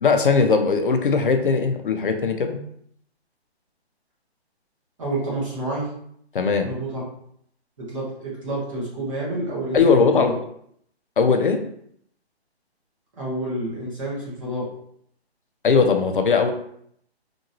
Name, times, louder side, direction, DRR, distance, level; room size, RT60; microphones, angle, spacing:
voice 1, 0.0-2.6 6.3-6.7 9.7-10.3 11.2-11.6 15.6-16.5, left 5 dB, 50° left, 5 dB, 0.5 m, -19 dB
voice 2, 5.0-5.9 6.6-7.0 7.8-10.3 13.2-14.6, right 2 dB, 30° right, -6 dB, 1.1 m, -29 dB
2.9 x 2.6 x 2.6 m, 0.68 s
hypercardioid pair, 165°, 33 cm